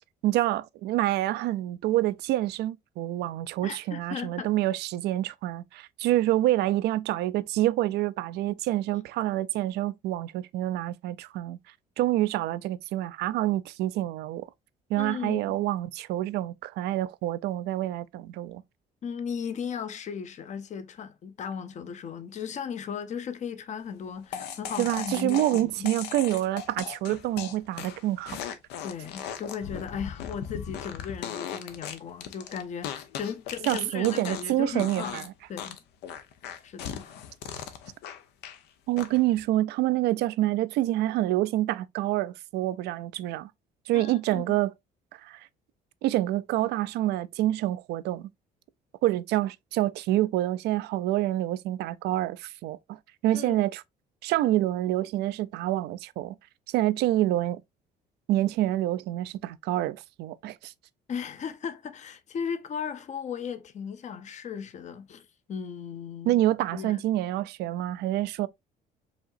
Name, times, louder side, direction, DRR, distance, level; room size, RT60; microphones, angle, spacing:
voice 1, 0.2-11.6 12.0-14.5 14.9-18.6 24.8-28.4 33.7-35.3 38.9-43.5 43.9-44.7 45.1-45.5 46.0-48.3 49.0-53.8 54.2-56.3 56.7-57.6 58.3-60.7 66.3-68.5, right 15 dB, 75° right, 0.4 m, -27 dB
voice 2, 3.6-4.5 15.0-15.6 19.0-25.9 28.8-35.8 36.6-37.1 43.9-44.6 53.3-53.6 61.1-66.4 66.7-67.0, left 7 dB, 45° left, 0.7 m, -36 dB
sound 1, 24.3-34.5 34.8-35.3 35.6-38.6 39.0-39.4, left 8 dB, 80° left, 0.8 m, -38 dB
5.0 x 2.9 x 2.5 m
cardioid pair, 110°, 17 cm